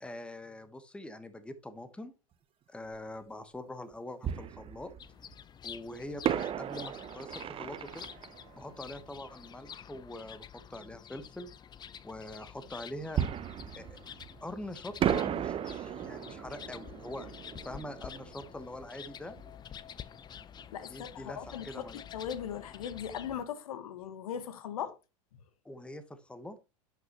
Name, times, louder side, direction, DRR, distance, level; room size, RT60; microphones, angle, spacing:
voice 1, 0.0-2.2 2.7-4.9 5.6-8.1 8.6-11.5 12.0-13.2 13.8-14.0 14.4-17.3 17.6-19.4 20.9-22.0 25.6-26.6, left 1 dB, 5° left, 1.0 m, -44 dB
Fireworks, 2.9-3.0 4.2-5.3 6.2-9.7 13.1-14.6 15.0-19.5 19.8-19.9 20.4-20.6, right 10 dB, 30° right, 0.6 m, -35 dB
sound 1, 5.0-23.5, left 8 dB, 25° left, 0.5 m, -49 dB
voice 2, 20.7-25.0, left 9 dB, 80° left, 1.1 m, -39 dB
10.5 x 5.8 x 2.9 m
hypercardioid pair, 95°, 18 cm